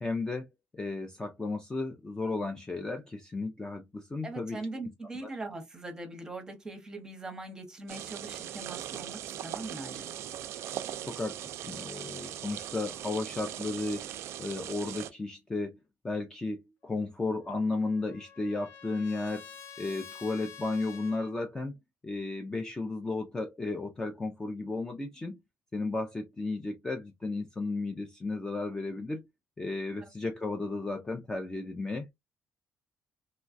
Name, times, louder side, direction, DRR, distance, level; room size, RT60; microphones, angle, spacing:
voice 1, 0.0-0.5 0.7-4.6 5.2-5.3 11.1-14.1 14.4-15.8 16.0-19.5 19.8-21.7 22.0-25.4 25.7-29.2 29.6-32.1, left 3 dB, 15° left, 0.4 m, -34 dB
voice 2, 4.2-10.1 30.0-30.1, right 2 dB, 15° right, 0.8 m, -41 dB
sound 1, 7.9-15.1, right 11 dB, 75° right, 0.3 m, -40 dB
Trumpet, 17.4-21.3, left 7 dB, 65° left, 0.6 m, -48 dB
3.0 x 2.2 x 2.4 m
cardioid pair, 165°, 5 cm